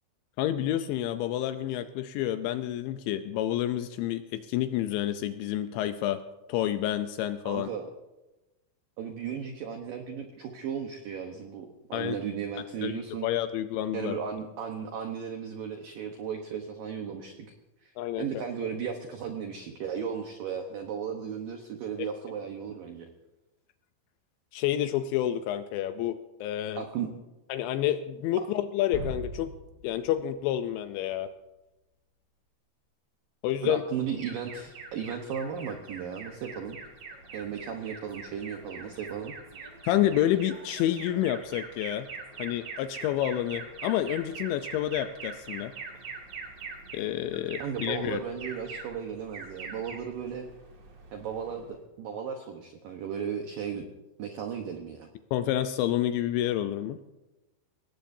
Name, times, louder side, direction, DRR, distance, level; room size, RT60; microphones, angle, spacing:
voice 1, 0.4-6.2 6.5-7.7 11.9-12.2 12.8-14.2 18.0-18.3 22.0-22.1 24.5-26.8 27.5-29.5 29.8-31.3 33.4-33.8 39.8-42.1 42.4-45.7 46.9-48.2 55.3-57.0, left 12 dB, 85° left, 9 dB, 2.7 m, -29 dB
voice 2, 7.4-7.9 9.0-13.3 13.9-17.3 17.8-17.9 18.2-23.1 26.8-27.1 33.6-36.8 37.3-39.3 47.6-50.5 51.1-53.9 54.2-55.1, right 7 dB, 90° right, 4 dB, 1.9 m, -35 dB
sound 1, 28.9-30.8, left 1 dB, 55° left, 8.5 m, -40 dB
Alarm, 34.2-51.8, right 4 dB, 45° right, 2.3 m, -43 dB
24.5 x 19.0 x 2.7 m, 1.0 s
omnidirectional pair, 5.7 m